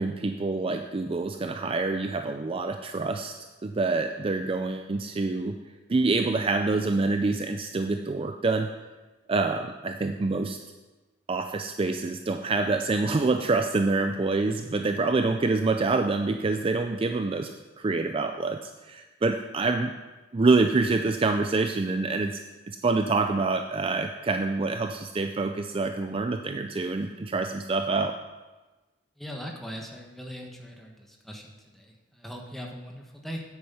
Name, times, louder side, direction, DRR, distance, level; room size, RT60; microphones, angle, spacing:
voice 1, 0.0-3.3 3.6-5.6 5.9-8.7 9.3-10.6 11.3-17.5 17.8-19.9 20.3-22.4 22.7-28.2, right 3 dB, 30° right, 6 dB, 0.4 m, -26 dB
voice 2, 29.2-33.4, equal, ahead, 0 dB, 1.3 m, -40 dB
9.6 x 7.9 x 5.6 m, 1.2 s
head